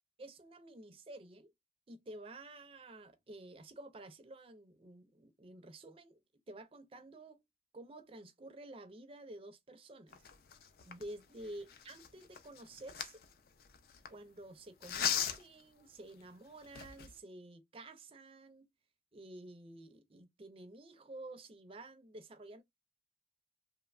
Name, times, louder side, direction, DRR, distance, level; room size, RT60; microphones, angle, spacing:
voice 1, 0.2-1.5 1.9-6.2 6.5-7.4 7.7-10.2 10.8-13.2 14.1-18.7 19.1-22.6, right 1 dB, 30° right, 0.4 m, -51 dB
sound 1, 10.1-14.1 14.8-15.6 16.2-16.3 16.6-17.2, left 8 dB, 55° left, 0.4 m, -39 dB
2.8 x 2.0 x 2.3 m
head